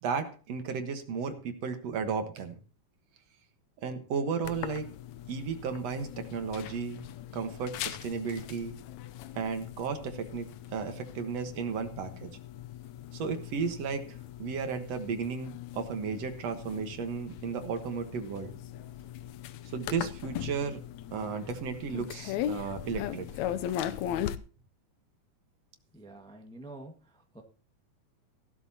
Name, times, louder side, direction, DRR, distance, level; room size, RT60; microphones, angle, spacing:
voice 1, 0.0-2.6 3.8-4.9 5.3-7.1 7.3-8.7 9.3-12.3 13.1-18.5 19.7-20.8 21.1-23.3, right 5 dB, 60° right, 7 dB, 2.4 m, -34 dB
sound 1, 4.4-24.4, left 11 dB, 75° left, 1.9 m, -39 dB
voice 2, 25.9-27.4, right 2 dB, 10° left, 3 dB, 0.3 m, -48 dB
16.5 x 12.0 x 2.9 m, 0.37 s
omnidirectional pair, 3.5 m